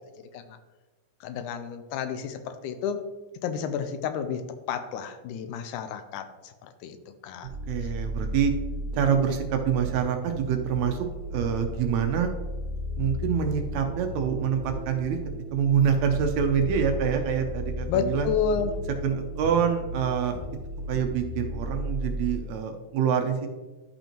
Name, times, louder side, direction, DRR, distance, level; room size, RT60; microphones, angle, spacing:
voice 1, 1.2-3.0 3.4-4.4 4.7-6.3 6.8-7.0 7.2-7.5 17.9-18.7, left 7 dB, 85° left, 9 dB, 2.1 m, -30 dB
sound 1, 7.4-22.3, equal, 25° right, 1.3 m, -34 dB
voice 2, 7.7-8.5 9.0-11.0 11.3-12.3 13.0-15.2 15.5-18.3 19.0-20.4 20.9-23.5, right 7 dB, 75° right, 5 dB, 1.8 m, -26 dB
11.5 x 5.4 x 2.9 m, 1.3 s
omnidirectional pair, 3.5 m